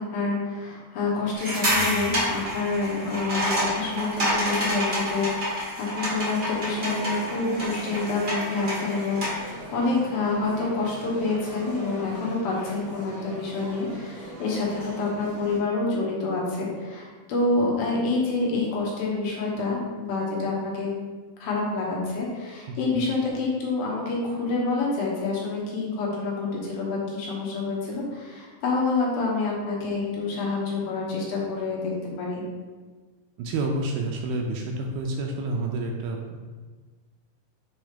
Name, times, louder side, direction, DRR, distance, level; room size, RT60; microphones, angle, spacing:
voice 1, 0.0-20.9 21.4-31.9 32.2-32.4, left 3 dB, 75° left, -4 dB, 3.0 m, -27 dB
sound 1, 1.3-9.5, equal, 65° right, 0.5 m, -28 dB
sound 2, 6.2-15.6, right 1 dB, 35° right, 1.1 m, -41 dB
voice 2, 22.7-23.1 33.4-36.4, right 2 dB, 80° right, 1 dB, 2.2 m, -29 dB
6.8 x 3.1 x 5.0 m, 1.4 s
omnidirectional pair, 4.5 m